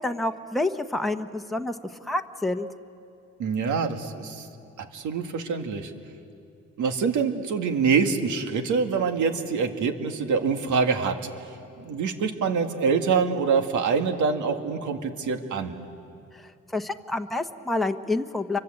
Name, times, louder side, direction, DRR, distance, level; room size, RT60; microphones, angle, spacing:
voice 1, 0.0-1.8 2.0-2.7 16.3-16.4 16.7-18.6, left 2 dB, ahead, 4 dB, 1.1 m, -28 dB
voice 2, 3.4-4.5 4.8-5.9 6.8-11.2 11.8-15.7, right 5 dB, 75° right, 5 dB, 2.2 m, -25 dB
30.0 x 24.5 x 8.1 m, 2.5 s
cardioid pair, 90°, 30 cm